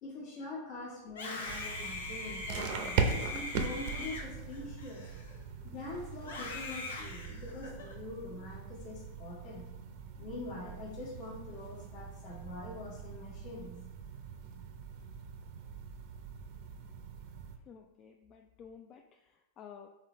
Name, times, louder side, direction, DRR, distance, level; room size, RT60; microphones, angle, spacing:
voice 1, 0.0-5.0 5.6-9.6 10.2-13.8, left 2 dB, 55° left, -6 dB, 1.3 m, -44 dB
Screaming, 1.1-5.6 6.2-7.9, left 2 dB, 90° left, 0.8 m, -42 dB
sound 1, 1.5-17.6, right 5 dB, 60° right, 0.5 m, -40 dB
voice 2, 17.7-19.9, left 7 dB, 35° left, 4 dB, 0.3 m, -53 dB
4.2 x 3.9 x 3.0 m, 0.96 s
hypercardioid pair, 115°, 0 cm